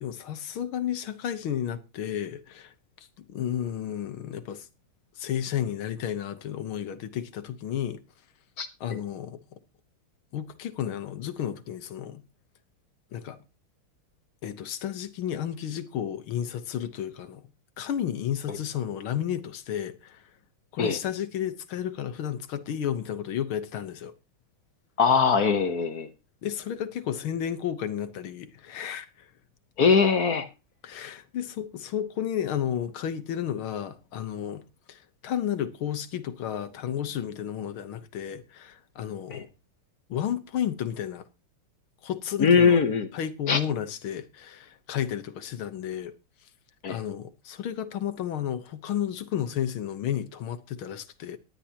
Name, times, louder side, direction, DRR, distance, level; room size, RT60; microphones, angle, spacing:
voice 1, 0.0-2.7 3.2-4.7 5.2-8.0 8.8-9.4 10.3-12.2 13.1-13.4 14.4-17.5 17.8-20.2 20.7-24.1 26.4-29.3 30.8-39.5 40.1-41.3 42.0-42.8 43.1-46.1 46.9-51.4, left 10 dB, 75° left, 1.9 m, -32 dB
voice 2, 25.0-26.1 29.8-30.5 39.3-39.4 42.4-43.1 43.5-43.6 46.8-47.0, left 5 dB, 50° left, 1.4 m, -21 dB
18.5 x 11.5 x 2.9 m
omnidirectional pair, 2.4 m